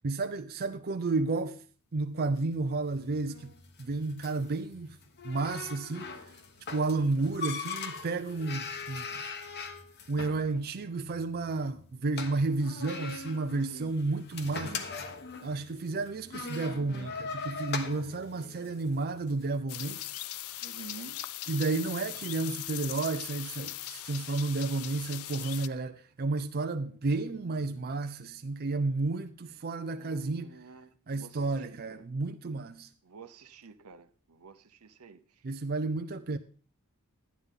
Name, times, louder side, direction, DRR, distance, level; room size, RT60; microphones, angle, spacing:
voice 1, 0.0-1.6 1.9-5.0 5.2-6.1 6.7-9.2 10.1-14.8 15.4-20.0 21.5-30.6 31.1-32.9 35.4-36.4, right 3 dB, 45° right, 0.5 m, -32 dB
sound 1, 2.2-19.5, left 4 dB, 50° left, 1.1 m, -41 dB
sound 2, 19.7-25.7, left 14 dB, 65° left, 0.4 m, -40 dB
voice 2, 20.6-21.2 29.9-32.0 33.0-35.4, right 4 dB, 75° right, 0.8 m, -50 dB
12.0 x 9.4 x 3.7 m
head